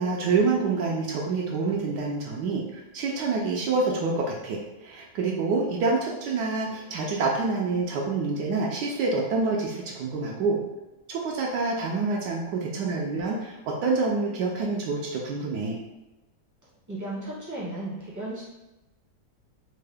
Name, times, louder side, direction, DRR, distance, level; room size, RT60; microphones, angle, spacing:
voice 1, 0.0-10.6 11.1-15.8, right 3 dB, 80° right, -2 dB, 1.2 m, -27 dB
voice 2, 16.9-18.4, right 1 dB, 20° right, -7 dB, 0.5 m, -34 dB
4.4 x 2.1 x 3.3 m, 1.0 s
omnidirectional pair, 1.9 m